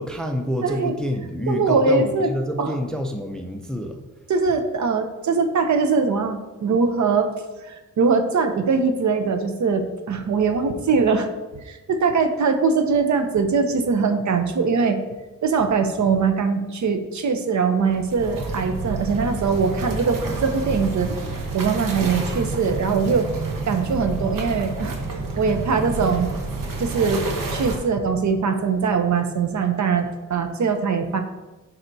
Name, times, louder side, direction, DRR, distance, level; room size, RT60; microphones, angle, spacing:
voice 1, 0.0-4.0, equal, ahead, 4 dB, 0.4 m, -27 dB
voice 2, 0.6-0.9 1.5-2.3 2.6-2.8 4.3-7.3 7.7-11.3 11.6-15.0 15.4-21.1 21.5-23.3 23.7-25.0 25.4-26.3 26.8-27.3 27.5-31.2, right 5 dB, 60° right, 7 dB, 0.6 m, -21 dB
sound 1, 17.9-27.8, right 3 dB, 75° right, 1.1 m, -29 dB
10.5 x 4.3 x 2.7 m, 1.1 s
wide cardioid pair, 140°, 33 cm